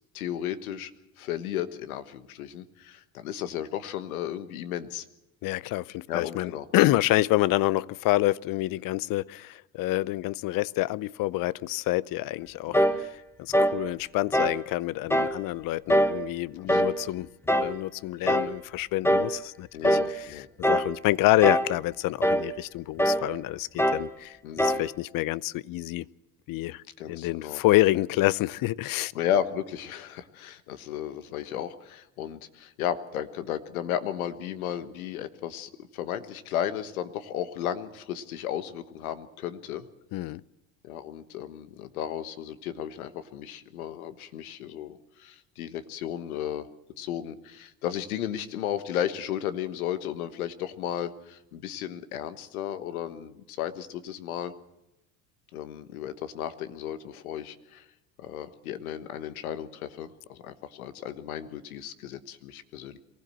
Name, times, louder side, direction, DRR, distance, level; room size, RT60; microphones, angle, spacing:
voice 1, 0.1-0.9 1.2-5.0 6.1-6.6 12.6-13.0 16.6-16.8 19.7-20.5 24.4-24.8 27.0-27.6 29.1-39.9 40.8-46.7 47.0-54.5 55.5-57.8 58.2-63.0, left 10 dB, 90° left, 11 dB, 1.4 m, -34 dB
voice 2, 5.4-13.1 13.4-17.3 17.6-26.1 26.5-29.1 40.1-40.4, left 17 dB, 55° left, 21 dB, 0.7 m, -27 dB
sound 1, 12.7-13.0 13.5-13.8 14.3-14.6 15.1-15.4 15.9-16.2 16.7-17.0 17.5-17.8 18.3-18.5 19.0-19.4 19.8-20.2 20.6-20.9 21.4-21.8 22.2-22.5 23.0-23.3 23.8-24.1 24.6-24.9, equal, 5° left, 1.2 m, -23 dB
23.0 x 15.5 x 7.6 m, 0.90 s
hypercardioid pair, 80°, 42 cm